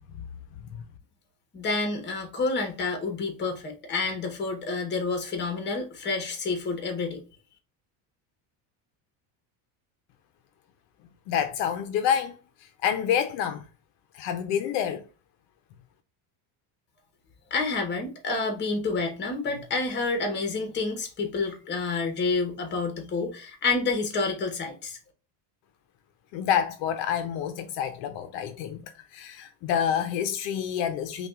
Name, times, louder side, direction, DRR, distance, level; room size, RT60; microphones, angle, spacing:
voice 1, 1.5-7.2 17.5-25.0, left 3 dB, 25° left, 0.9 m, -29 dB
voice 2, 11.3-13.6 14.1-15.0 26.3-31.3, left 9 dB, 65° left, 0.6 m, -28 dB
5.5 x 2.4 x 2.3 m
cardioid pair, 165°, 46 cm